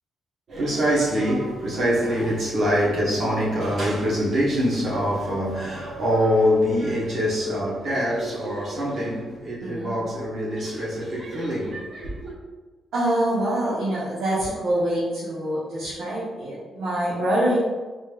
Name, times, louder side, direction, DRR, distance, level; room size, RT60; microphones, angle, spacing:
voice 1, 0.5-12.3, equal, 60° right, 1.3 m, -24 dB
voice 2, 9.6-10.0 12.9-17.6, right 1 dB, 80° right, 1.2 m, -25 dB
4.1 x 3.3 x 2.5 m
cardioid pair, 95°, 0 cm